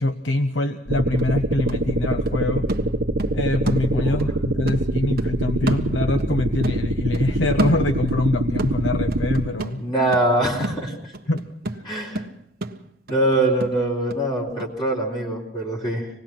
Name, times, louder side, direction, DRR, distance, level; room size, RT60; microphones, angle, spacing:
voice 1, 0.0-2.7 3.3-10.2 11.3-11.4 11.7-11.8, left 2 dB, 85° left, 7 dB, 1.0 m, -24 dB
sound 1, 0.7-0.8 1.2-4.3 4.7-6.4 6.6-8.2 8.6-14.2 14.6-14.7, right 1 dB, 55° right, 1.4 m, -31 dB
sound 2, 0.9-9.5, right 1 dB, 85° right, 1.1 m, -24 dB
voice 2, 9.8-11.1 11.8-12.2 13.1-16.1, right 1 dB, 25° left, -3 dB, 3.9 m, -23 dB
26.0 x 19.0 x 6.0 m, 0.79 s
head